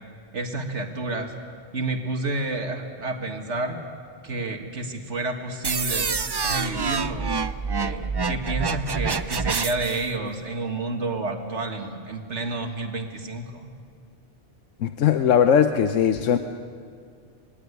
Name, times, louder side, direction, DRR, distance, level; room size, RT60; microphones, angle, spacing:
voice 1, 0.3-1.3 1.7-3.8 4.2-6.1 6.4-7.4 7.8-13.7, right 2 dB, 70° right, 3 dB, 2.0 m, -30 dB
sound 1, 5.6-10.0, right 4 dB, 40° right, 0.3 m, -27 dB
voice 2, 14.8-16.4, left 8 dB, 85° left, 8 dB, 1.1 m, -19 dB
22.0 x 16.5 x 9.6 m, 2.2 s
omnidirectional pair, 1.2 m